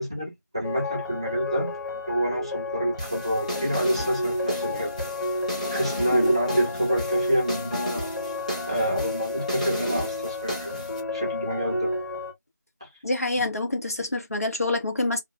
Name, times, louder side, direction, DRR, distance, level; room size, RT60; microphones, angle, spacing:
voice 1, 0.0-4.9 5.7-8.1 8.7-10.8 11.1-11.9 12.8-12.9 13.3-13.5, equal, 15° right, 0.6 m, -28 dB
sound 1, 0.6-12.3, left 2 dB, 90° left, 0.9 m, -31 dB
sound 2, 3.0-11.0, equal, 25° left, 0.8 m, -34 dB
voice 2, 13.0-15.2, left 2 dB, 55° left, 0.9 m, -26 dB
2.4 x 2.1 x 2.9 m
figure-of-eight pair, 170°, 10 cm